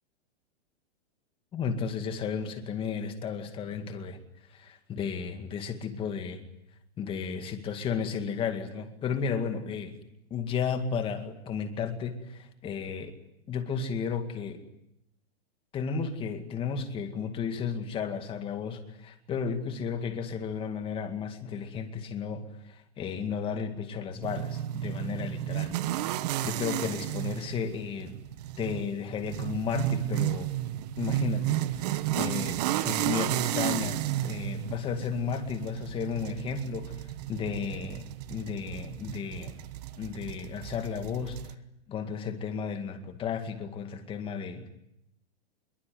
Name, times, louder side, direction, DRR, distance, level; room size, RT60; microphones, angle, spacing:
voice 1, 1.5-4.2 4.5-6.4 7.0-9.9 10.3-13.1 13.5-14.6 15.7-25.7 26.4-28.2 28.6-30.5 31.0-37.0 37.3-38.0 38.3-39.5 40.0-41.5 41.9-44.6, left 6 dB, 15° left, 7 dB, 2.2 m, -33 dB
sound 1, 24.2-41.5, right 13 dB, 35° right, 1.2 m, -33 dB
26.0 x 23.0 x 9.5 m, 0.81 s
hypercardioid pair, 165°, 34 cm